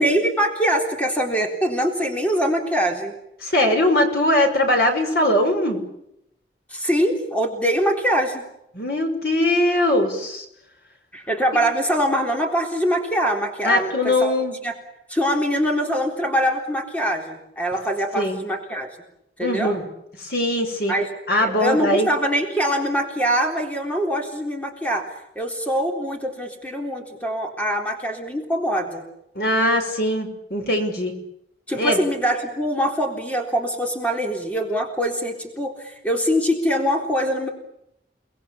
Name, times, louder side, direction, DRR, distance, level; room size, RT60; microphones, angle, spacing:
voice 1, 0.0-3.1 6.7-8.4 11.1-14.3 14.6-14.7 15.1-18.9 19.4-19.7 20.9-21.1 21.4-25.1 25.4-29.0 31.7-37.5, equal, 10° left, 2 dB, 3.8 m, -23 dB
voice 2, 3.4-5.8 8.7-10.4 13.6-14.6 18.1-18.4 19.4-19.8 20.2-20.9 21.3-22.1 29.3-31.1 31.8-32.0, left 1 dB, 60° left, 4 dB, 6.1 m, -21 dB
30.0 x 20.5 x 8.7 m, 0.81 s
head